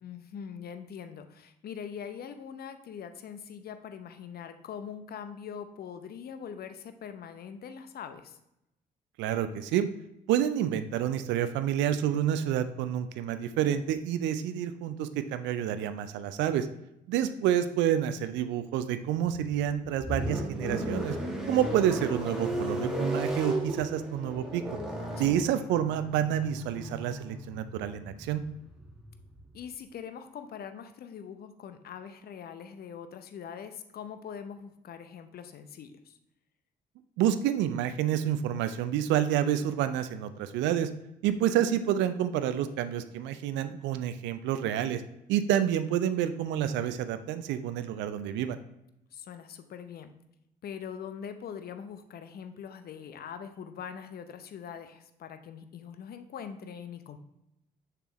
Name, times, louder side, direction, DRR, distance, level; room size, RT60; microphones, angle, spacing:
voice 1, 0.0-8.4 25.2-25.6 29.5-36.2 49.1-50.2 50.6-57.2, left 7 dB, 45° left, 9 dB, 0.7 m, -42 dB
voice 2, 9.2-9.9 10.3-16.7 17.1-21.2 21.5-24.6 25.2-28.4 37.2-40.9 41.2-45.0 45.3-48.6, right 10 dB, 60° right, 11 dB, 0.5 m, -28 dB
sound 1, 19.3-29.5, right 1 dB, 5° right, 1.7 m, -35 dB
6.8 x 5.9 x 3.0 m, 0.84 s
figure-of-eight pair, 45°, 21 cm